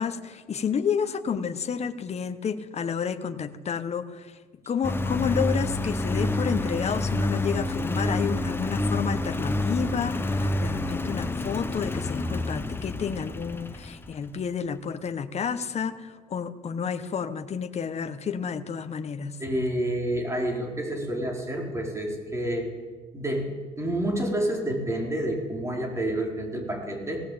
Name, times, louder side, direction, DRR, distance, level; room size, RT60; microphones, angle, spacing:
voice 1, 0.0-4.3 4.7-19.4, left 7 dB, 40° left, 10 dB, 1.5 m, -30 dB
Engine, 4.8-14.3, left 2 dB, 15° left, 1.3 m, -28 dB
voice 2, 19.4-22.7 23.1-23.5 23.8-27.2, right 1 dB, 15° right, 1 dB, 5.1 m, -29 dB
18.5 x 18.0 x 8.9 m, 1.4 s
cardioid pair, 110°, 17 cm